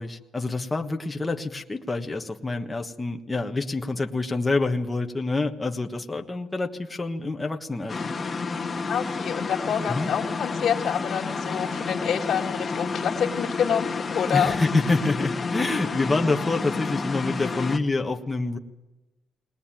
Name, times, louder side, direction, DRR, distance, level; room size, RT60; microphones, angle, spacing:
voice 1, 0.0-8.1 9.9-10.1 14.3-18.6, left 3 dB, 15° left, 3 dB, 1.4 m, -27 dB
sound 1, 7.9-17.8, left 4 dB, 30° left, 1.5 m, -30 dB
voice 2, 8.9-14.6, left 8 dB, 60° left, -4 dB, 2.0 m, -27 dB
20.0 x 20.0 x 9.0 m, 1.1 s
cardioid pair, 90°, 0 cm